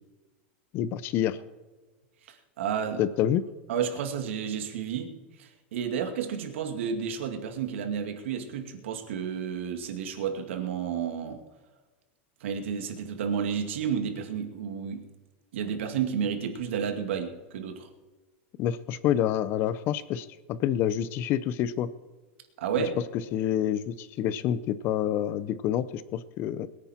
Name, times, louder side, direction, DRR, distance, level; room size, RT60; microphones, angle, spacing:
voice 1, 0.7-1.4 3.0-3.4 18.6-21.9 22.8-22.9 23.3-26.7, left 10 dB, 35° left, 16 dB, 0.7 m, -27 dB
voice 2, 2.3-3.0 3.7-5.1 5.4-11.4 12.4-15.1 15.5-17.9 22.6-23.0, right 7 dB, 80° right, 5 dB, 2.2 m, -31 dB
21.5 x 9.6 x 4.4 m, 1.3 s
supercardioid pair, 160°, 6 cm